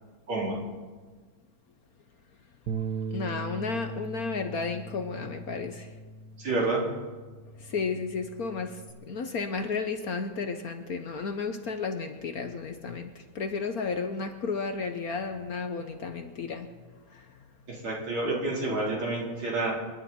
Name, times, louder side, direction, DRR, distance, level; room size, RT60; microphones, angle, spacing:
Bass guitar, 2.7-8.9, right 4 dB, 60° right, 1.3 m, -39 dB
voice 1, 3.1-5.9 7.6-16.7 17.1-17.3, left 4 dB, 55° left, 7 dB, 1.2 m, -33 dB
voice 2, 6.4-6.9 17.7-19.7, right 2 dB, 80° right, -4 dB, 4.9 m, -29 dB
27.0 x 11.5 x 4.3 m, 1.4 s
omnidirectional pair, 2.2 m